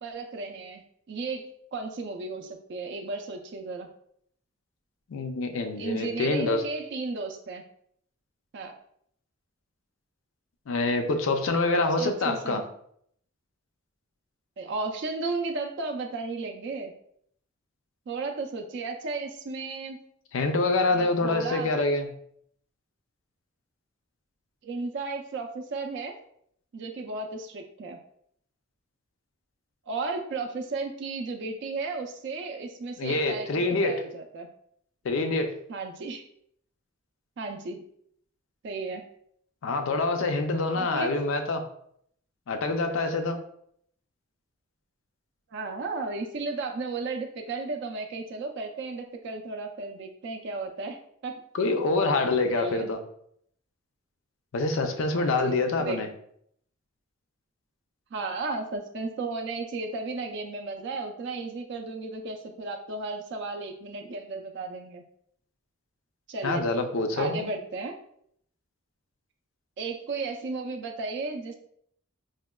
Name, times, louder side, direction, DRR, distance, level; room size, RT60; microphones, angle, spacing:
voice 1, 0.0-3.9 5.8-7.6 8.5-8.7 12.0-12.7 14.6-16.9 18.1-20.0 20.9-21.7 24.6-26.1 26.7-28.0 29.9-34.5 35.7-36.2 37.4-37.8 38.6-39.1 40.7-41.2 45.5-51.4 52.5-52.9 55.1-56.0 58.1-65.0 66.3-66.7 67.2-67.9 69.8-71.5, right 3 dB, 60° right, 4 dB, 0.4 m, -34 dB
voice 2, 5.1-6.6 10.7-12.6 20.3-22.1 33.0-33.9 35.0-35.5 39.6-41.6 42.5-43.4 51.5-53.0 54.5-56.1 66.4-67.5, left 3 dB, 70° left, 6 dB, 0.4 m, -26 dB
4.8 x 2.1 x 2.2 m, 0.68 s
head